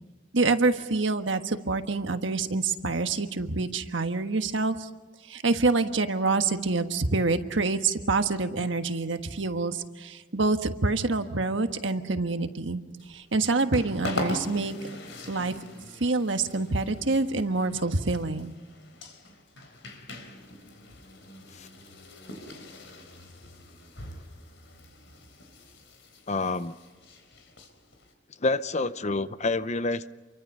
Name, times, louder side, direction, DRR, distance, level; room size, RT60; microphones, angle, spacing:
voice 1, 0.3-4.9 5.3-12.8 13.1-14.7 15.3-15.6 16.0-18.5, right 3 dB, 75° right, 7 dB, 1.4 m, -26 dB
sound 1, 13.0-28.1, left 1 dB, 75° left, 4.1 m, -42 dB
voice 2, 26.3-26.7 28.4-30.1, left 3 dB, 35° left, 13 dB, 0.7 m, -28 dB
28.5 x 23.5 x 5.5 m, 1.3 s
head